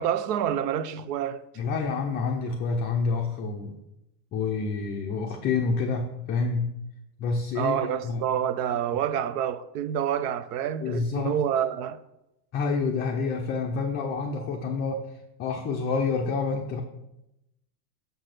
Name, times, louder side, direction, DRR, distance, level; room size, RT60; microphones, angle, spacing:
voice 1, 0.0-1.4 7.5-12.0, right 9 dB, 75° right, 0.7 m, -28 dB
voice 2, 1.6-3.8 4.3-6.7 7.2-8.2 10.8-11.4 12.5-15.0 15.4-16.8, left 4 dB, 25° left, 0.4 m, -28 dB
6.7 x 4.0 x 6.5 m
supercardioid pair, 145°, 47 cm